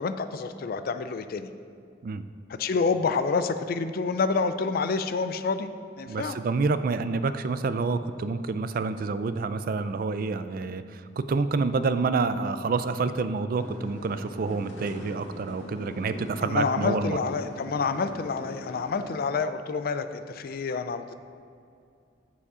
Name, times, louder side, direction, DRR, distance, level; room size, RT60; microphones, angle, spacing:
voice 1, 0.0-1.5 2.6-5.7 6.0-6.4 16.4-21.1, left 4 dB, 50° left, 10 dB, 0.4 m, -28 dB
voice 2, 6.1-17.2, right 4 dB, 50° right, 12 dB, 0.4 m, -28 dB
sound 1, 13.6-19.0, left 1 dB, 80° left, 1.7 m, -42 dB
7.3 x 7.0 x 4.9 m, 2.4 s
head